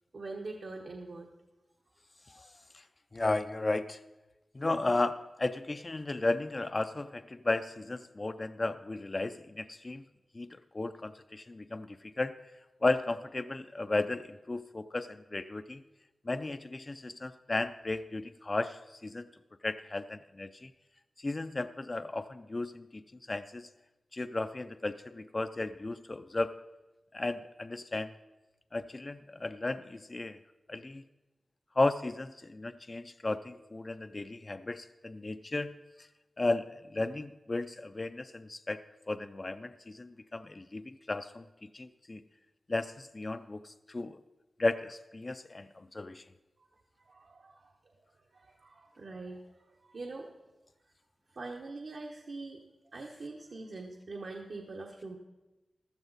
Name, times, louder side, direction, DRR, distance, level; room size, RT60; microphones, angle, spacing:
voice 1, 0.1-1.3 46.6-46.7 47.0-47.7 48.3-50.3 51.3-52.6 52.9-55.2, right 3 dB, 65° right, 1 dB, 1.1 m, -43 dB
voice 2, 3.1-4.0 4.5-10.0 10.3-12.4 12.8-15.8 16.3-19.3 19.6-20.7 21.2-23.0 23.3-23.7 24.1-26.5 27.1-28.1 28.7-30.4 30.7-31.0 31.8-35.7 36.4-36.7 36.9-38.8 39.1-41.4 41.7-42.2 42.7-44.2 44.6-46.2, left 2 dB, 30° left, 10 dB, 0.4 m, -34 dB
15.0 x 12.5 x 4.0 m, 1.0 s
wide cardioid pair, 115°, 0 cm